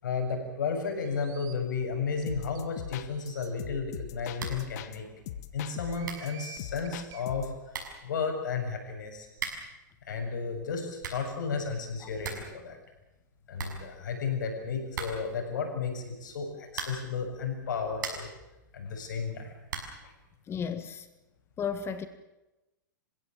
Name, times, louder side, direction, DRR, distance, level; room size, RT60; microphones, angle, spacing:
voice 1, 0.0-5.1 5.5-9.3 10.1-12.8 13.5-18.3 18.7-19.5 20.0-20.1, left 5 dB, 75° left, 4 dB, 7.1 m, -33 dB
sound 1, 1.0-1.5 2.2-2.3 2.5-2.6 3.1-3.5 4.2-4.3 4.6-4.7 5.7-7.2, right 9 dB, 35° right, 2.9 m, -50 dB
sound 2, 2.3-5.0 5.3-7.6, left 11 dB, 60° left, 1.8 m, -41 dB
sound 3, 4.4-4.7 5.0-5.1 5.7-5.8 6.0-6.4 7.3-7.4 7.7-8.1 9.3-9.8 10.7-11.4 11.7-11.8 12.0-12.6 12.8-12.9 13.2-13.3 13.5-14.3 14.9-15.4 16.7-17.2 17.7-18.4 19.7-20.1, right 6 dB, 75° right, 6.3 m, -39 dB
voice 2, 20.5-21.1 21.6-22.0, left 7 dB, 25° left, 11 dB, 1.7 m, -33 dB
28.5 x 16.0 x 7.8 m, 0.99 s
hypercardioid pair, 120°, 10 cm